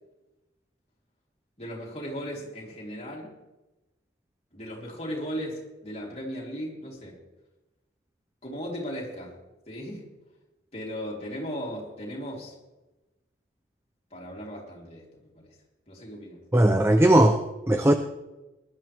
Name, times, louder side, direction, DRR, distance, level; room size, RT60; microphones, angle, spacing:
voice 1, 1.6-3.3 4.5-7.2 8.4-9.3 9.7-10.1 10.7-12.5 14.1-15.5 15.9-16.4, equal, 35° left, -3 dB, 3.4 m, -37 dB
voice 2, 16.5-17.9, right 1 dB, 15° right, 7 dB, 0.6 m, -19 dB
19.5 x 11.5 x 3.5 m, 1.0 s
head